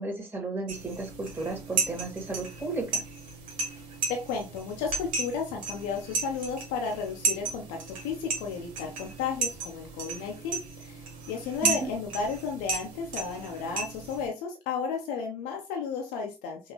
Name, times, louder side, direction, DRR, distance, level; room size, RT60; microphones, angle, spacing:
voice 1, 0.0-3.0 11.6-11.9, right 3 dB, 15° right, -1 dB, 2.1 m, -34 dB
sound 1, 0.7-14.3, right 4 dB, 70° right, 1.4 m, -34 dB
voice 2, 4.1-16.6, left 5 dB, 75° left, 2 dB, 0.8 m, -33 dB
5.4 x 2.8 x 3.1 m, 0.27 s
hypercardioid pair, 40°, 15 cm